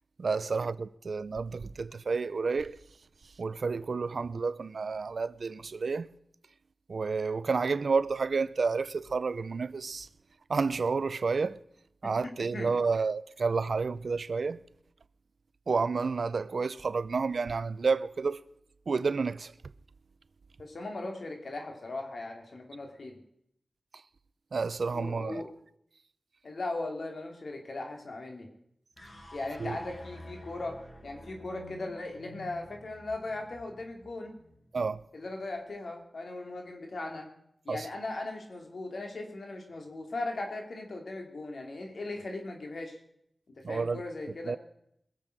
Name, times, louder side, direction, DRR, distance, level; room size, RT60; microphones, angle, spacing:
voice 1, 0.2-2.8 3.4-6.1 6.9-10.1 10.5-11.6 12.0-14.6 15.7-18.4 18.9-19.5 24.5-25.4 29.6-29.8 34.7-35.0 37.7-37.9 43.6-44.0 44.5-44.6, right 4 dB, 75° right, 0.5 m, -30 dB
voice 2, 20.6-23.2 24.9-25.5 26.4-28.5 29.3-30.8 31.0-34.3 35.1-37.3 37.6-43.0 43.5-44.6, left 2 dB, 75° left, 2.8 m, -38 dB
sound 1, 29.0-35.3, left 1 dB, 50° left, 5.2 m, -50 dB
21.0 x 7.6 x 6.6 m
cardioid pair, 50°, 0 cm